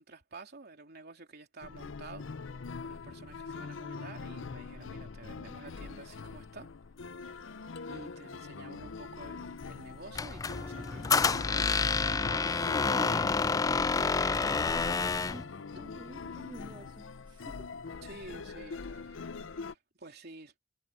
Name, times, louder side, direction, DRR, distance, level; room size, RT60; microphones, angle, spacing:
voice 1, 0.0-6.7 7.9-11.7 12.0-14.5 18.0-20.6, right 2 dB, 55° right, 3.4 m, -50 dB
sound 1, 1.6-19.7, left 4 dB, 85° left, 0.6 m, -43 dB
sound 2, 7.8-8.9, left 3 dB, 65° left, 7.2 m, -50 dB
Squeak, 10.1-15.4, left 4 dB, 20° left, 0.3 m, -28 dB
voice 2, 15.3-17.7, equal, 25° right, 1.6 m, -50 dB
head